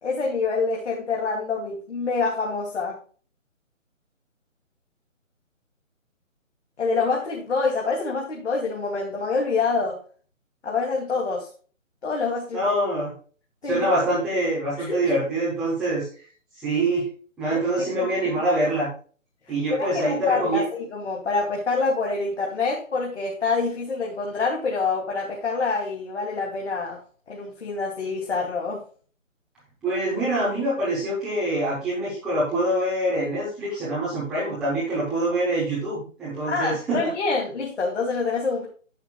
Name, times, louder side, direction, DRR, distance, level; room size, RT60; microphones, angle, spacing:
voice 1, 0.0-3.0 6.8-10.0 10.6-11.5 12.0-12.7 13.6-13.9 14.8-15.0 17.5-17.6 18.0-18.1 19.7-27.0 27.3-28.8 36.5-38.7, left 4 dB, 55° left, -2 dB, 2.6 m, -26 dB
voice 2, 12.5-13.1 13.6-16.1 16.5-17.1 17.4-18.9 19.5-20.6 29.8-37.0, right 1 dB, ahead, -12 dB, 0.8 m, -25 dB
11.0 x 7.9 x 2.3 m, 0.39 s
figure-of-eight pair, 155°, 40 cm